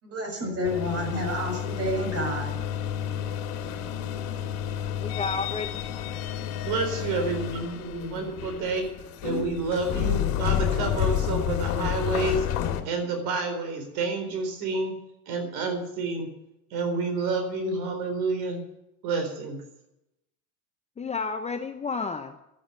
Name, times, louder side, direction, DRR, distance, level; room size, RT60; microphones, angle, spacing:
voice 1, 0.0-2.5, equal, 35° right, 3 dB, 7.0 m, -29 dB
sound 1, 0.6-12.8, left 10 dB, 50° left, 2.2 m, -30 dB
voice 2, 5.0-6.1 21.0-22.4, left 4 dB, 15° left, 6 dB, 0.8 m, -32 dB
voice 3, 6.6-8.8 9.2-12.5 12.8-14.9 15.3-16.3 16.7-18.6 19.0-19.6, right 3 dB, 55° right, 6 dB, 4.2 m, -29 dB
12.0 x 10.0 x 8.2 m, 0.87 s
hypercardioid pair, 105°, 44 cm